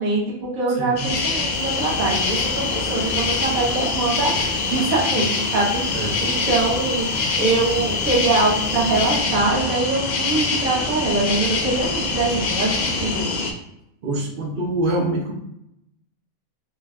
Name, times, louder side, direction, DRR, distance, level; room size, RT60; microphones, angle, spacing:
voice 1, 0.0-7.1 7.4-13.3, right 3 dB, 85° right, -5 dB, 1.5 m, -23 dB
voice 2, 0.8-1.1 5.9-6.2 14.0-15.3, right 1 dB, 50° right, 0 dB, 0.7 m, -25 dB
sound 1, 1.0-13.5, left 3 dB, 75° left, 0.4 m, -25 dB
sound 2, 1.0-13.2, left 1 dB, 40° left, 0.7 m, -34 dB
sound 3, 1.5-9.2, left 9 dB, 60° left, 1.1 m, -33 dB
3.3 x 2.4 x 3.3 m, 0.80 s
omnidirectional pair, 1.4 m